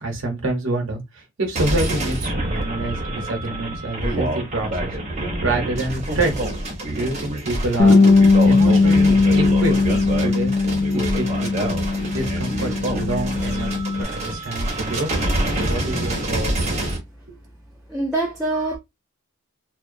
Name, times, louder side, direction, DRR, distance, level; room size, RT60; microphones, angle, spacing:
voice 1, 0.0-5.0 5.4-6.3 6.9-8.0 8.5-9.7 10.2-10.5 10.9-13.7 14.1-15.1 15.5-16.5, right 2 dB, 60° right, 0.8 m, -27 dB
sound 1, 1.6-17.0, right 1 dB, 35° right, 0.8 m, -26 dB
Bass guitar, 7.8-14.0, left 3 dB, 55° left, 0.4 m, -18 dB
voice 2, 17.9-18.8, right 2 dB, 5° right, 0.5 m, -24 dB
2.3 x 2.1 x 2.5 m
head